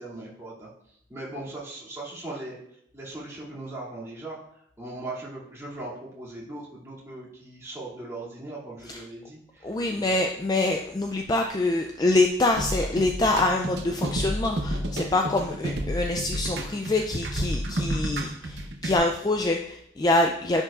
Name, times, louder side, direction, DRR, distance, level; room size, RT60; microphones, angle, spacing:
voice 1, 0.0-10.1, right 2 dB, 15° right, -8 dB, 2.5 m, -39 dB
voice 2, 9.6-20.6, left 2 dB, 20° left, 3 dB, 0.3 m, -25 dB
sound 1, 12.6-19.0, right 1 dB, 60° right, 0.8 m, -30 dB
9.8 x 5.3 x 2.4 m, 0.72 s
head